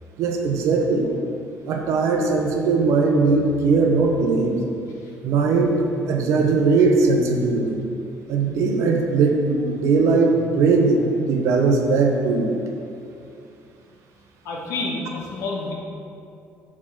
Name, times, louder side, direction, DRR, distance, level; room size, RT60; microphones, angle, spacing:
voice 1, 0.2-1.1 1.7-4.6 5.2-7.8 8.3-12.5, right 4 dB, 75° right, 2 dB, 0.9 m, -19 dB
voice 2, 14.4-15.7, left 3 dB, 80° left, -1 dB, 1.2 m, -29 dB
6.2 x 3.7 x 6.2 m, 2.6 s
cardioid pair, 115°, 5 cm